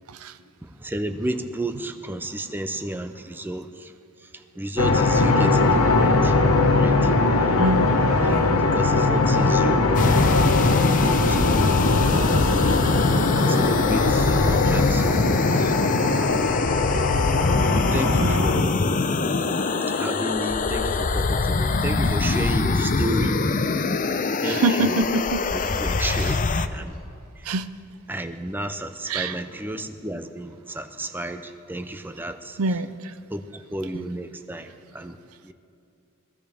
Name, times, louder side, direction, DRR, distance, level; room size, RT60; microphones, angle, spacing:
voice 1, 0.6-3.9 4.3-6.3 6.8-7.6 8.2-8.4 8.7-10.9 11.3-11.7 13.2-15.7 17.7-18.8 19.9-23.4 24.4-25.0 25.5-26.9 27.4-27.5 28.1-32.6 33.3-35.2 35.4-35.5, right 1 dB, 10° right, 8 dB, 0.5 m, -32 dB
sound 1, 4.8-18.6, left 3 dB, 80° left, 1.0 m, -21 dB
voice 2, 7.6-8.0 8.3-8.6 12.1-12.2 18.2-18.4 24.5-25.4 27.5-27.7 29.1-29.4 32.6-33.0 33.9-34.1, right 2 dB, 90° right, 12 dB, 0.6 m, -25 dB
sound 2, 9.9-26.7, left 3 dB, 40° left, 0.5 m, -23 dB
22.0 x 15.5 x 3.5 m, 2.6 s
head